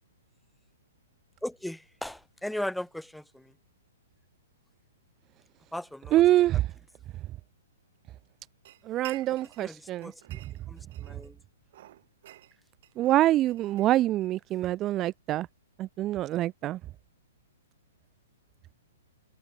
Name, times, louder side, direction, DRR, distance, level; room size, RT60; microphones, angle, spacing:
voice 1, 1.4-3.5 5.7-6.2 9.6-10.4 10.7-11.4, left 1 dB, ahead, 0.9 m, -37 dB
voice 2, 6.1-6.6 8.9-10.1 13.0-15.5 15.8-16.8, right 14 dB, 25° right, 0.5 m, -25 dB
sound 1, 8.6-9.7 10.0-11.3 11.7-14.4, right 14 dB, 55° right, 4.5 m, -51 dB
open air
hypercardioid pair, 140°, 0 cm